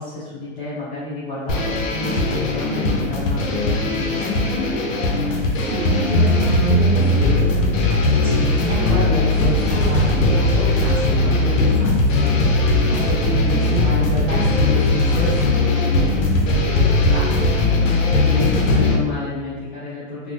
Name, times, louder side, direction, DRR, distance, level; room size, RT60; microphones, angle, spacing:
voice 1, 0.0-4.4 18.2-20.3, left 2 dB, 45° left, -12 dB, 1.4 m, -30 dB
sound 1, 1.5-18.9, left 2 dB, 80° left, 0.8 m, -18 dB
voice 2, 5.5-17.5, equal, 15° right, -9 dB, 0.9 m, -30 dB
4.1 x 2.1 x 2.8 m, 1.3 s
supercardioid pair, 165°, 38 cm